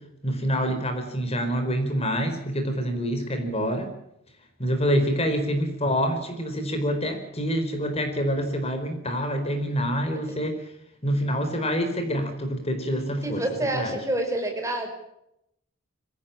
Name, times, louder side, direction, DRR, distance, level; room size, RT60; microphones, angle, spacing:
voice 1, 0.2-3.9 4.6-10.6 11.0-13.4 13.7-13.9, equal, 30° left, 7 dB, 4.5 m, -26 dB
voice 2, 13.2-14.9, right 1 dB, 15° right, 4 dB, 5.3 m, -27 dB
25.0 x 16.5 x 8.8 m, 0.79 s
head